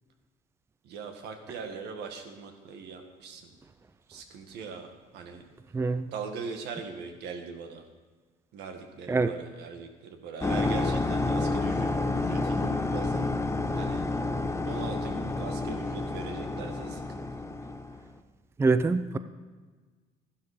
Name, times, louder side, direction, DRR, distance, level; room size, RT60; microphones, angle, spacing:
voice 1, 0.8-3.5 4.1-5.5 6.1-7.9 8.5-13.4 13.7-14.1 14.6-17.3, right 5 dB, 80° right, 5 dB, 1.8 m, -41 dB
voice 2, 5.7-6.1 9.1-9.3 18.6-19.2, right 3 dB, 15° right, 12 dB, 0.4 m, -25 dB
sound 1, 10.4-18.0, left 2 dB, 15° left, 0.7 m, -29 dB
13.0 x 12.0 x 5.0 m, 1.4 s
cardioid pair, 110°, 17 cm